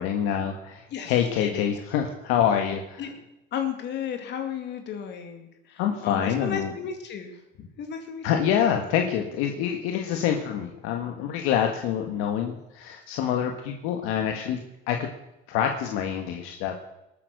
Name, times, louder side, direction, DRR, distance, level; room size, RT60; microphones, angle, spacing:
voice 1, 0.0-3.1 5.8-6.7 8.2-14.6 14.9-15.1 15.5-16.7, left 9 dB, 85° left, 3 dB, 1.8 m, -26 dB
voice 2, 0.9-1.6 3.0-3.1 3.5-8.2, left 8 dB, 55° left, 5 dB, 2.3 m, -34 dB
20.0 x 8.7 x 6.8 m, 0.90 s
cardioid pair, 130°, 21 cm